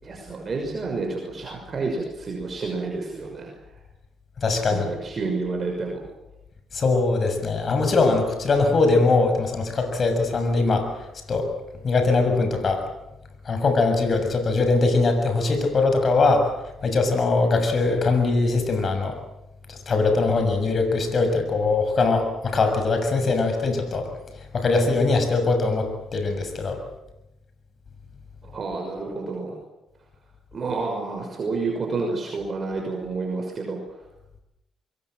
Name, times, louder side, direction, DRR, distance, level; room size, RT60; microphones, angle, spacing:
voice 1, 0.0-3.5 4.7-6.0 28.4-29.6 30.5-33.8, right 3 dB, 40° right, 1 dB, 6.0 m, -29 dB
voice 2, 4.4-4.9 6.7-11.5 11.8-12.8 13.4-16.5 16.8-19.2 19.7-24.1 24.3-26.8, left 3 dB, 45° left, 6 dB, 6.7 m, -21 dB
25.5 x 22.0 x 7.8 m, 0.91 s
cardioid pair, 90°, 0 cm